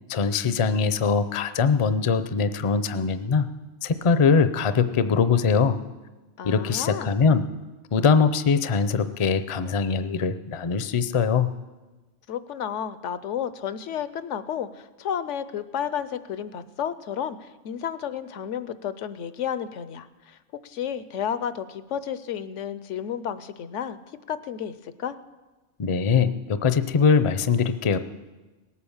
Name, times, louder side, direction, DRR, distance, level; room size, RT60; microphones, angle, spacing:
voice 1, 0.1-3.5 3.8-5.8 6.4-7.4 7.9-11.5 25.8-28.0, left 5 dB, 40° left, 12 dB, 0.5 m, -22 dB
voice 2, 6.4-7.1 12.3-20.4 20.6-24.0 24.3-25.2, left 8 dB, 80° left, 14 dB, 1.0 m, -32 dB
18.5 x 8.7 x 7.2 m, 1.2 s
omnidirectional pair, 1.2 m